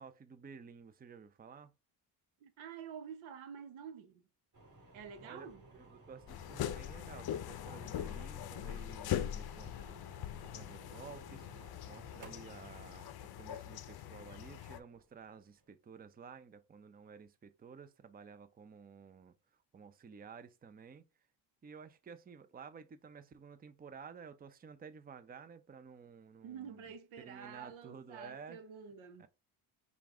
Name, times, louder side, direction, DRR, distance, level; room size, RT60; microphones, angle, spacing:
voice 1, 0.0-1.7 5.2-10.0 10.5-19.3 19.7-21.0 21.6-26.8 27.2-28.6 29.2-29.3, right 6 dB, 20° right, 0.5 m, -53 dB
voice 2, 2.4-4.2 4.9-5.7 26.4-29.3, right 7 dB, 85° right, 1.0 m, -49 dB
sound 1, 4.5-15.7, right 2 dB, 40° right, 2.4 m, -59 dB
sound 2, 6.3-14.8, left 11 dB, 55° left, 0.6 m, -42 dB
5.2 x 2.4 x 3.6 m
cardioid pair, 90°, 46 cm